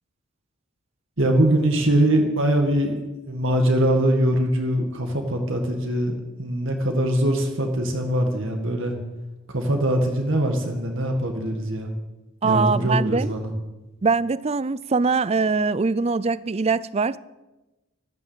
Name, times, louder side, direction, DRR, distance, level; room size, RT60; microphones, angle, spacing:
voice 1, 1.2-3.0 3.3-9.0 9.5-11.9 12.4-13.5, right 1 dB, 55° right, 2.0 m, -22 dB
voice 2, 12.4-13.3 14.0-17.2, right 4 dB, 30° right, 0.4 m, -22 dB
13.0 x 13.0 x 8.0 m
head